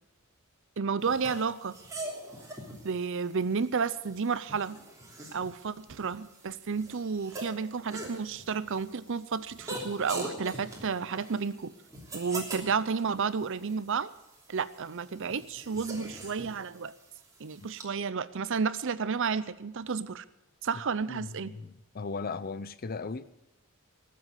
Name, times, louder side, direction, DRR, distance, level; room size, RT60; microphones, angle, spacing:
voice 1, 0.8-1.8 2.8-4.8 5.3-11.7 12.1-14.1 14.5-16.9 17.4-20.2 20.6-21.5, right 5 dB, 60° right, 0.6 m, -31 dB
sound 1, 1.0-17.8, right 2 dB, 15° right, 3.0 m, -44 dB
voice 2, 21.1-23.3, left 4 dB, 45° left, 0.6 m, -37 dB
19.0 x 7.7 x 7.7 m
head